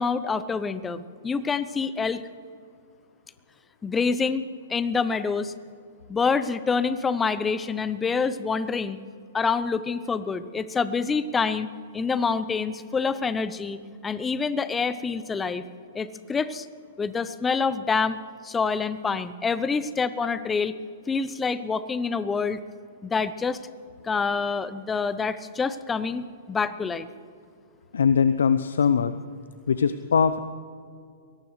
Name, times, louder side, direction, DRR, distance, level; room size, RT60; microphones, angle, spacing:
voice 1, 0.0-2.2 3.8-5.5 6.1-9.0 9.3-15.6 15.9-16.7 17.0-18.2 18.4-20.7 21.1-22.6 23.0-23.6 24.0-27.1, left 5 dB, 15° left, 14 dB, 0.7 m, -27 dB
voice 2, 27.9-29.2 29.7-30.4, left 6 dB, 80° left, 12 dB, 0.5 m, -21 dB
23.5 x 18.0 x 3.2 m, 2.3 s
hypercardioid pair, 120°, 0 cm